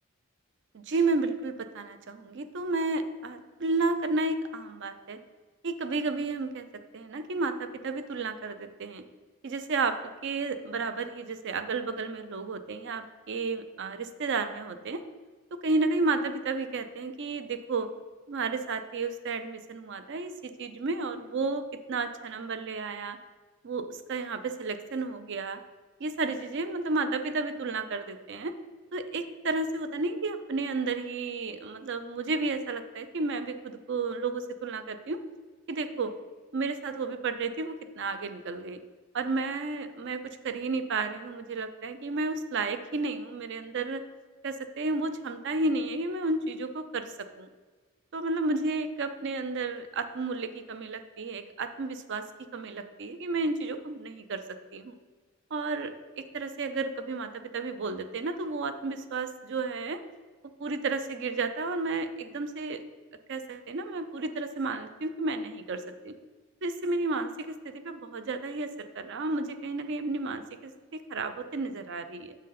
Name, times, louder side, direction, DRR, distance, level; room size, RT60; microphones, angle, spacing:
voice 1, 0.7-5.2 5.6-6.6 6.9-9.0 9.4-10.0 10.2-15.0 15.5-17.9 18.3-23.2 23.6-25.6 26.0-28.5 28.9-35.2 35.7-36.1 36.5-38.8 39.1-44.0 44.4-47.1 47.4-47.5 48.1-52.2 52.5-54.4 54.7-54.9 55.5-55.9 56.2-60.0 60.6-62.8 63.3-66.1 66.6-72.4, right 3 dB, 55° right, 9 dB, 0.5 m, -32 dB
7.4 x 4.0 x 5.7 m, 1.4 s
head